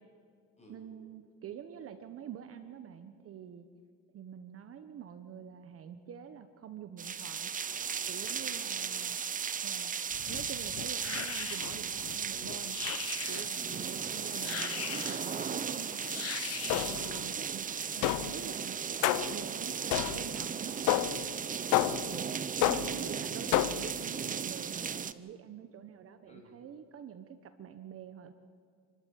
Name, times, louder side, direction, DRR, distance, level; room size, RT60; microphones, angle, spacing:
voice 1, 0.7-3.7 4.1-7.5 8.1-9.2 9.6-9.9 10.3-12.8 13.3-16.1 16.7-17.7 18.0-18.8 19.3-21.6 22.7-28.3, right 9 dB, 40° right, 9 dB, 1.3 m, -46 dB
sound 1, 7.0-25.1, right 7 dB, 25° right, 0.7 m, -36 dB
voice 2, 7.4-8.4 8.7-8.9 12.3-12.6 13.6-13.9 17.0-17.3 17.8-18.5 26.3-26.5, left 1 dB, 20° left, 1 dB, 7.8 m, -56 dB
sound 2, 10.1-17.0, left 11 dB, 45° left, 1.2 m, -42 dB
sound 3, 16.7-17.2 18.0-18.5 19.0-19.4 19.9-20.4 20.9-21.3 21.7-22.2 22.6-23.1 23.5-24.0, left 15 dB, 65° left, 0.8 m, -29 dB
28.0 x 12.5 x 9.6 m, 2.1 s
supercardioid pair, 105°, 34 cm